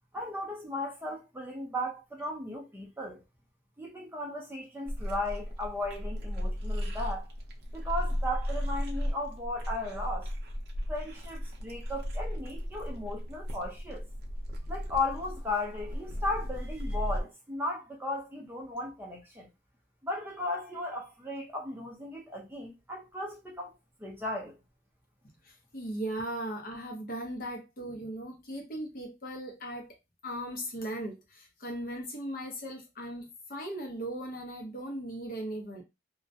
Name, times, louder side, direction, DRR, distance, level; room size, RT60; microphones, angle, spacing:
voice 1, 0.1-3.2 3.8-7.3 7.7-10.3 10.9-14.0 14.7-19.5 20.0-23.7 24.0-24.6, left 1 dB, 10° right, 0.5 m, -36 dB
sound 1, 4.9-17.2, equal, 55° right, 0.5 m, -35 dB
voice 2, 25.4-30.0 30.2-35.8, right 1 dB, 50° left, 0.7 m, -38 dB
2.3 x 2.0 x 2.6 m
head